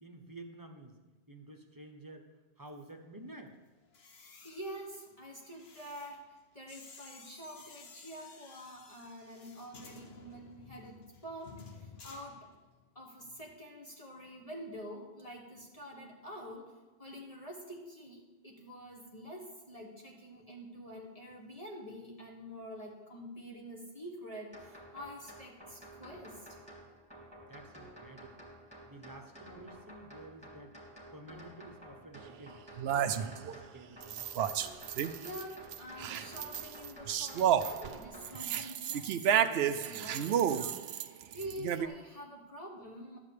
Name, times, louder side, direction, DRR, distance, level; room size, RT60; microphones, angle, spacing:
voice 1, 0.0-0.9 1.3-2.3 2.6-3.6 27.5-28.4 28.9-30.8 31.1-32.6 33.0-34.3, right 2 dB, 20° right, 4 dB, 0.9 m, -51 dB
sound 1, 3.8-12.9 13.2-13.5, left 5 dB, 70° left, 1.2 m, -55 dB
voice 2, 4.1-12.5 12.9-26.6 35.2-43.2, equal, 35° left, -1 dB, 1.4 m, -47 dB
sound 2, 24.5-38.3, right 1 dB, 5° left, 2.6 m, -52 dB
sound 3, 32.2-32.3 32.8-33.5 34.0-35.4 35.7-41.9, right 9 dB, 70° right, 0.8 m, -31 dB
12.0 x 4.8 x 8.3 m, 1.2 s
omnidirectional pair, 1.1 m